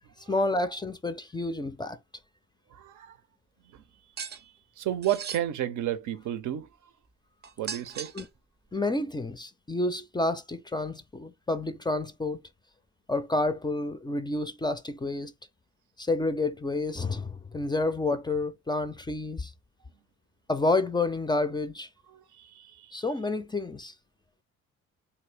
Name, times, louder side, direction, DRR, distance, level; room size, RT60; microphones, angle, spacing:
voice 1, 0.3-2.0 8.1-8.3 8.7-12.4 13.1-15.3 16.0-19.5 20.5-21.9 22.9-23.9, left 2 dB, 15° left, 0.4 m, -29 dB
voice 2, 2.7-3.2 3.7-3.8 4.4-6.7 7.6-8.1 22.1-23.0, right 12 dB, 75° right, 0.6 m, -32 dB
sound 1, 4.2-4.4 5.0-5.4 7.4-8.4, right 6 dB, 35° right, 0.6 m, -38 dB
3.0 x 2.8 x 3.2 m
cardioid pair, 90°, 30 cm